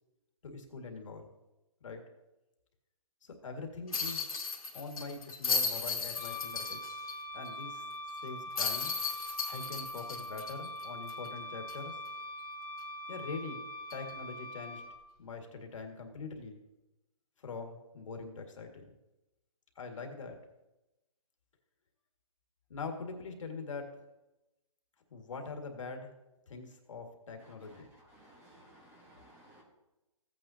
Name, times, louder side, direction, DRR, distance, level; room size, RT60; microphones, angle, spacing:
voice 1, 0.4-1.2 1.8-2.0 3.2-4.3 4.7-6.9 7.3-7.8 8.2-9.0 9.4-12.0 13.1-13.7 13.9-14.8 15.2-16.6 17.4-18.9 19.8-20.4 22.7-23.9 25.1-26.1 26.5-27.9, left 4 dB, 60° left, 4 dB, 2.0 m, -43 dB
sound 1, 3.9-7.1 7.5-7.6 8.6-11.3 11.7-11.8 13.9-14.1, left 4 dB, 85° left, 2.4 m, -35 dB
Wind instrument woodwind instrument, 6.1-14.9, equal, 5° left, 1.0 m, -43 dB
voice 2, 28.1-29.6, right 1 dB, 10° right, -1 dB, 1.3 m, -58 dB
15.5 x 9.0 x 2.8 m, 0.98 s
hypercardioid pair, 170°, 18 cm